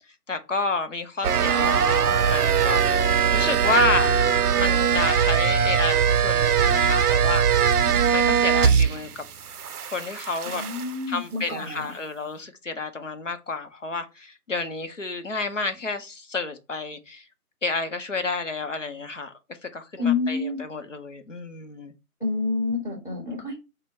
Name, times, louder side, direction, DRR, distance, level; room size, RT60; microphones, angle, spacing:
voice 1, 0.3-2.8 3.3-4.2 4.5-7.5 8.1-9.2 9.9-10.6 11.1-17.2 17.6-19.3 19.6-21.9, left 3 dB, 55° left, 0.7 m, -30 dB
sound 1, 1.2-9.1 9.4-10.9, right 7 dB, 80° right, 0.5 m, -21 dB
voice 2, 10.4-11.9 20.0-20.6 22.2-23.6, left 4 dB, 30° left, 1.4 m, -28 dB
5.1 x 2.2 x 4.2 m
figure-of-eight pair, 180°, 45 cm